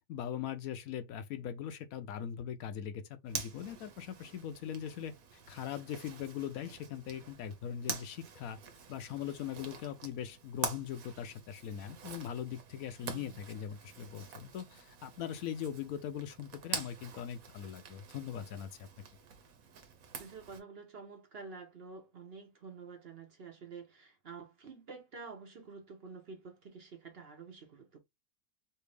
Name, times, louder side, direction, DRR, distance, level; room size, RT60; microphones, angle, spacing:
voice 1, 0.1-5.1 5.5-8.6 8.9-18.9, left 9 dB, 75° left, 1.0 m, -41 dB
Zipper (clothing), 3.3-20.6, right 6 dB, 75° right, 1.2 m, -46 dB
voice 2, 13.0-13.4 20.2-28.0, right 4 dB, 50° right, 0.9 m, -49 dB
3.3 x 2.6 x 3.2 m
omnidirectional pair, 1.5 m